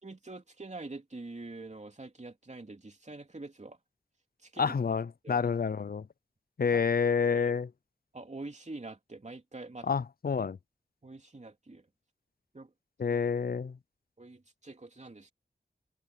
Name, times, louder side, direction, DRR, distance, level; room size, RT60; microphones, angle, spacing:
voice 1, 0.0-3.8 4.4-4.6 5.2-5.4 6.7-6.8 7.4-7.5 8.1-9.9 11.0-11.8 12.5-12.7 13.1-13.2 14.2-15.3, right 2 dB, 40° right, 3.1 m, -45 dB
voice 2, 4.6-6.1 6.6-7.7 9.8-10.6 13.0-13.8, left 6 dB, 60° left, 0.6 m, -28 dB
wide cardioid pair, 60°, 17 cm